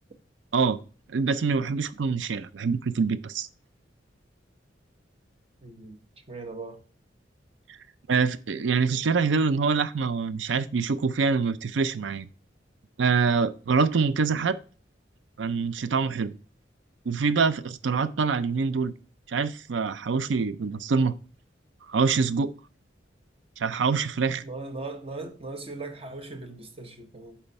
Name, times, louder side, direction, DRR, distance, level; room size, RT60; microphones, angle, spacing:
voice 1, 1.1-3.5 8.1-12.2 13.0-14.6 15.4-16.3 17.1-18.9 19.3-21.1 21.9-22.5 23.6-24.4, right 5 dB, 85° right, 0.5 m, -25 dB
voice 2, 5.6-6.0 6.3-6.8 24.4-27.4, right 3 dB, 35° right, 1.0 m, -39 dB
7.0 x 4.4 x 5.4 m
head